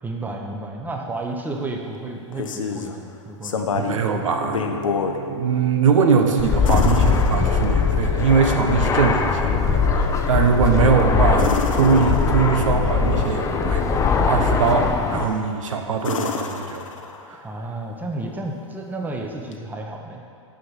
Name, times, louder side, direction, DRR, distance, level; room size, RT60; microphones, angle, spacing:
voice 1, 0.0-3.7 4.6-4.7 17.4-20.2, right 2 dB, 10° right, 1 dB, 1.0 m, -32 dB
sound 1, 2.1-2.9 3.4-4.1 4.4-5.2 6.6-7.9 11.3-12.6 15.1-15.5 16.0-17.4 19.5-19.6, left 6 dB, 85° left, 0.8 m, -28 dB
Piano, 3.7-14.1, right 2 dB, 35° right, 0.8 m, -35 dB
voice 2, 3.7-4.8 5.2-16.8 17.3-17.4, right 6 dB, 80° right, 4 dB, 0.9 m, -21 dB
Fixed-wing aircraft airplane, 6.4-15.2, left 5 dB, 20° left, 0.6 m, -21 dB
6.6 x 5.8 x 7.3 m, 2.4 s
hypercardioid pair, 115°, 16 cm